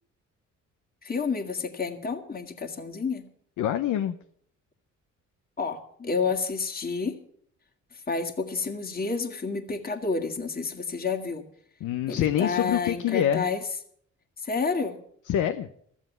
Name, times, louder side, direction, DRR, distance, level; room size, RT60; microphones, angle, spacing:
voice 1, 1.0-3.2 5.6-7.2 7.9-11.5 12.1-13.6 14.4-15.0, left 4 dB, 30° left, 3 dB, 1.9 m, -30 dB
voice 2, 3.6-4.2 11.8-13.5 15.3-15.7, left 10 dB, 80° left, 8 dB, 0.8 m, -26 dB
14.5 x 7.3 x 9.2 m, 0.65 s
cardioid pair, 90°, 30 cm